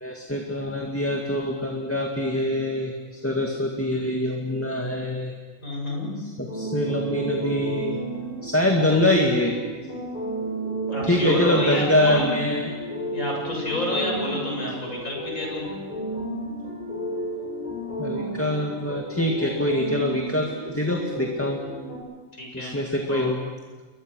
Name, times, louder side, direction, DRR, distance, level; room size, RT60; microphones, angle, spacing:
voice 1, 0.0-5.4 6.4-8.0 8.4-9.6 11.0-12.7 18.0-21.6 22.5-23.4, left 1 dB, 10° left, 0 dB, 2.1 m, -24 dB
voice 2, 5.6-6.1 10.8-12.3 13.1-15.6 22.4-22.7 23.1-23.4, left 1 dB, 80° left, -1 dB, 7.7 m, -29 dB
sound 1, 6.5-22.0, right 1 dB, 25° left, 6.8 m, -32 dB
29.0 x 23.0 x 6.4 m, 1.3 s
omnidirectional pair, 1.4 m